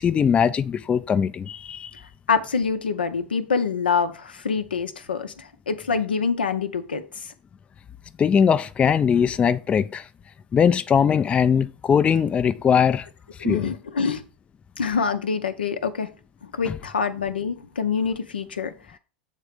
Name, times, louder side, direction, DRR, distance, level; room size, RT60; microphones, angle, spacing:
voice 1, 0.0-1.9 8.2-10.0 10.5-13.1 13.4-13.7 16.7-16.8, left 7 dB, 20° left, 0.3 m, -20 dB
voice 2, 2.3-7.0 13.4-14.2 14.8-16.1 16.5-18.7, left 5 dB, 85° left, 0.6 m, -25 dB
7.3 x 3.3 x 5.0 m
figure-of-eight pair, 85°, 5 cm